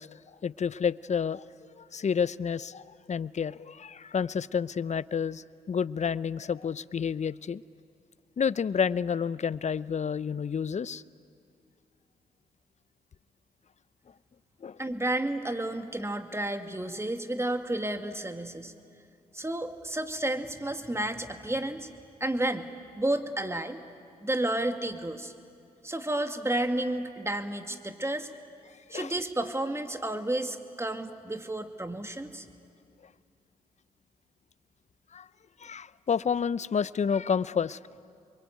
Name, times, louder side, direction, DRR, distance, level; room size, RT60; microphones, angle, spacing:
voice 1, 0.0-1.5 1.7-7.6 8.4-11.0 14.6-14.8 28.9-29.1 35.1-35.3 35.6-37.8, left 6 dB, 45° left, 18 dB, 0.7 m, -30 dB
voice 2, 14.8-18.7 19.3-21.9 22.2-22.7 23.0-23.8 24.2-25.3 25.8-28.3 28.9-32.5, right 1 dB, 15° right, 7 dB, 2.3 m, -31 dB
28.0 x 22.5 x 9.4 m, 2.4 s
supercardioid pair, 45°, 17 cm